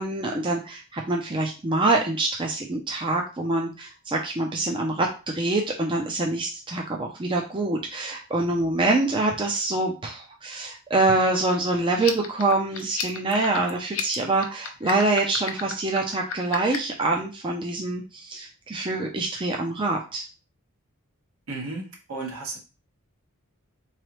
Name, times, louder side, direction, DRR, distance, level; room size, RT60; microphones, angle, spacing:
voice 1, 0.0-20.3, right 2 dB, 20° right, 1 dB, 0.4 m, -25 dB
sound 1, 11.9-17.0, left 8 dB, 70° left, 0.6 m, -34 dB
voice 2, 21.5-22.6, right 3 dB, 70° right, 0 dB, 1.2 m, -34 dB
3.8 x 3.2 x 3.0 m, 0.32 s
head